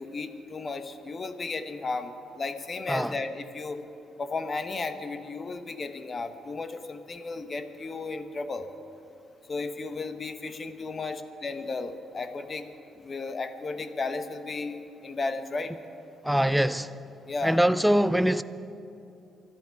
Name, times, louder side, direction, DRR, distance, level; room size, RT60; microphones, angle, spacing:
voice 1, 0.0-3.8 4.2-8.7 9.5-12.7 13.0-15.7 17.3-17.6, left 3 dB, 35° left, 1.2 m, -34 dB
voice 2, 16.2-16.9 17.4-18.4, equal, ahead, 0.5 m, -23 dB
24.5 x 12.0 x 4.7 m
cardioid pair, 90°, 0 cm